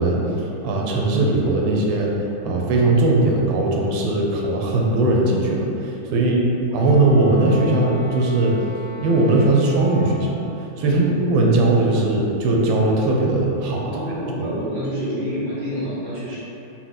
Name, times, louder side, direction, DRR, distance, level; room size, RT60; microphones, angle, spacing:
voice 1, 0.0-2.1 2.4-6.3 6.7-8.6 9.0-14.5, right 2 dB, 90° right, -1 dB, 1.4 m, -19 dB
voice 2, 6.1-6.4 6.7-6.9 10.8-11.1 13.8-16.4, equal, 65° right, -8 dB, 1.7 m, -28 dB
Wind instrument woodwind instrument, 6.7-10.4, right 2 dB, 90° left, 1.4 m, -37 dB
4.4 x 2.1 x 3.9 m, 2.9 s
omnidirectional pair, 2.1 m